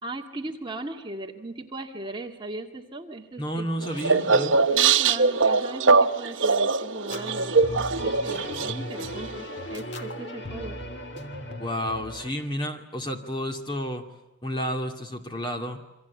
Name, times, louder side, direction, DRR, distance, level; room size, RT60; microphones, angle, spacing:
voice 1, 0.0-3.9 4.7-10.8, right 2 dB, 25° right, 3 dB, 2.0 m, -38 dB
voice 2, 3.4-4.6 11.6-14.1 14.4-15.8, equal, 20° left, 5 dB, 2.3 m, -31 dB
sound 1, 3.8-9.4, right 4 dB, 70° right, 1.1 m, -22 dB
sound 2, 7.1-12.3, left 1 dB, 55° left, 2.2 m, -37 dB
27.5 x 24.5 x 8.3 m, 1.0 s
head